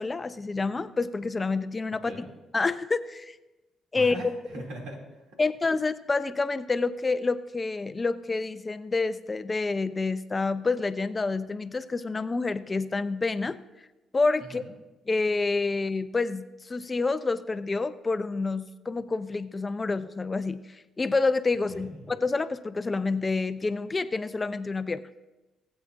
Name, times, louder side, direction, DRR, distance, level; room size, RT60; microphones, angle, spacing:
voice 1, 0.0-2.1 2.5-3.4 3.9-4.1 5.4-13.6 14.1-14.6 15.1-25.0, left 3 dB, 30° left, 12 dB, 0.5 m, -28 dB
voice 2, 3.9-5.2 14.4-14.7 21.7-22.0, right 1 dB, 85° right, 0 dB, 2.5 m, -41 dB
19.5 x 8.1 x 2.5 m, 1.1 s
supercardioid pair, 70°, 0 cm